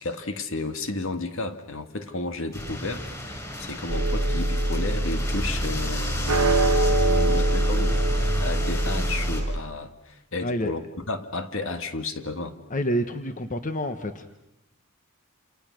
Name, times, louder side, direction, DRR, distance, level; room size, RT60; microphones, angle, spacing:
voice 1, 0.0-8.0 8.4-12.6, left 2 dB, 65° left, 9 dB, 1.8 m, -33 dB
sound 1, 2.5-9.4, left 1 dB, 15° left, 6.3 m, -33 dB
sound 2, 3.9-9.6, right 1 dB, 90° right, 1.2 m, -23 dB
voice 2, 10.4-10.7 12.7-14.3, equal, 35° left, 8 dB, 1.2 m, -28 dB
28.5 x 28.0 x 6.4 m, 0.91 s
head